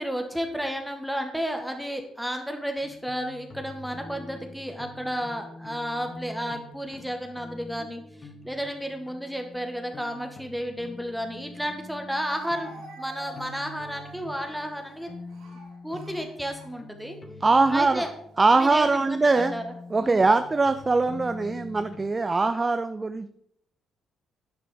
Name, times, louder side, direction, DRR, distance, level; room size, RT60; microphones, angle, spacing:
voice 1, 0.0-15.1 15.8-17.2 17.7-18.1 18.6-19.7 20.0-20.2, equal, ahead, 4 dB, 1.8 m, -32 dB
sound 1, 2.8-22.1, left 2 dB, 40° left, 2.1 m, -45 dB
Speech, 11.1-11.2 12.3-17.2 17.9-18.2 19.1-19.7, right 1 dB, 75° right, 3.8 m, -48 dB
voice 2, 17.4-18.0 18.4-19.5 19.9-23.3, right 3 dB, 30° right, 10 dB, 0.6 m, -22 dB
11.0 x 10.0 x 3.9 m, 0.71 s
hypercardioid pair, 45°, 0 cm